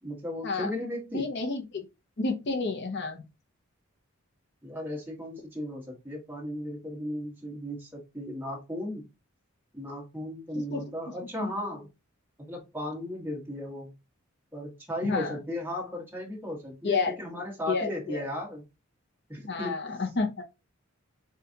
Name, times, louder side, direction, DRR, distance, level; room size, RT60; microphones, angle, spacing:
voice 1, 0.0-1.3 4.6-9.0 9.7-11.9 12.5-13.9 14.5-18.6 19.3-19.9, left 1 dB, 10° right, 1.6 m, -36 dB
voice 2, 1.1-1.8 2.2-3.2 10.7-10.8 11.4-11.5 15.0-15.4 16.8-17.2 17.7-18.2 19.4-20.4, left 4 dB, 55° left, 0.8 m, -30 dB
7.1 x 2.4 x 2.9 m
head